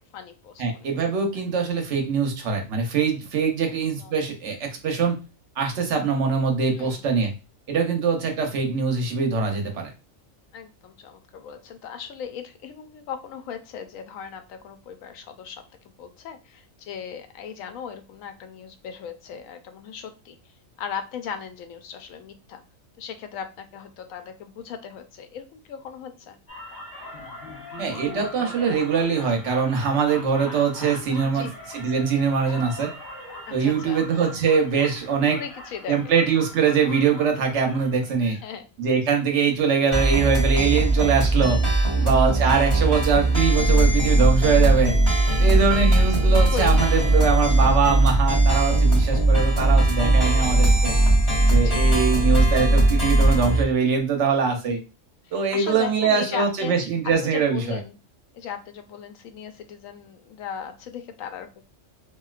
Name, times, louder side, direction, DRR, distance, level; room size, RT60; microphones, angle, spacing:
voice 1, 0.0-0.9 3.6-4.2 6.7-7.0 10.5-15.6 16.0-22.6 23.0-26.4 31.2-31.5 33.5-34.0 35.3-36.0 38.2-38.7 41.9-42.7 45.5-45.8 46.2-46.9 47.3-47.7 50.2-50.5 51.6-51.9 54.6-54.9 55.2-58.0 58.3-61.6, left 7 dB, 90° left, 8 dB, 1.0 m, -37 dB
voice 2, 0.6-5.2 5.6-7.3 7.7-9.9 27.8-32.9 33.5-35.4 35.9-38.4 38.8-41.6 42.0-45.0 45.4-50.9 51.4-54.8 55.3-57.8, right 6 dB, 65° right, 3 dB, 1.1 m, -23 dB
sound 1, 26.5-38.5, left 2 dB, 55° left, 0.9 m, -40 dB
sound 2, 39.9-53.6, right 2 dB, 15° left, 1.7 m, -19 dB
3.0 x 2.6 x 2.4 m, 0.30 s
omnidirectional pair, 1.4 m